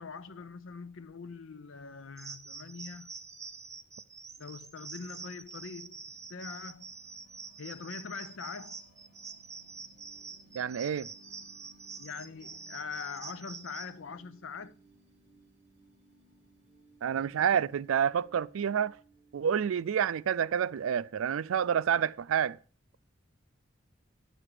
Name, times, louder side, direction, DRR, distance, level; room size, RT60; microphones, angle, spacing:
voice 1, 0.0-3.1 4.4-6.9 7.6-8.8 12.0-14.8, left 5 dB, 75° left, 0.7 m, -43 dB
sound 1, 2.2-13.9, right 5 dB, 15° right, 0.5 m, -46 dB
sound 2, 5.3-21.8, right 3 dB, 40° right, 4.9 m, -63 dB
voice 2, 10.5-11.1 17.0-18.9 19.3-22.6, right 8 dB, 90° right, 0.4 m, -28 dB
11.0 x 7.5 x 4.9 m
head